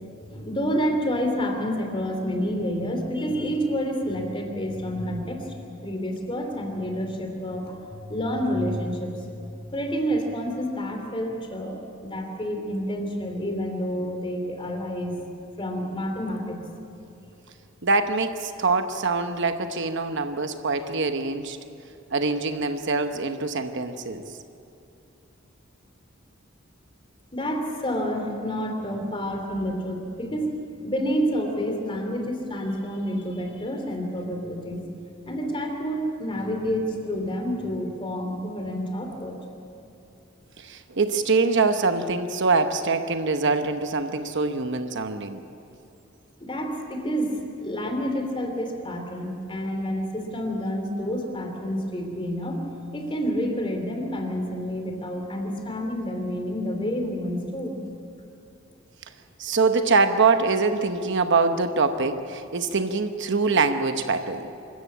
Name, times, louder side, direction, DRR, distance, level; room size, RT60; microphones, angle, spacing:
voice 1, 0.3-5.5 5.8-9.2 9.4-15.2 15.6-16.6 27.3-30.5 30.8-34.8 35.2-39.4 46.4-52.6 52.9-57.8, equal, 25° left, 4 dB, 2.8 m, -29 dB
voice 2, 17.8-21.6 22.1-24.2 40.6-45.4 59.4-64.5, right 4 dB, 60° right, 8 dB, 1.0 m, -24 dB
25.0 x 14.0 x 8.5 m, 2.7 s
head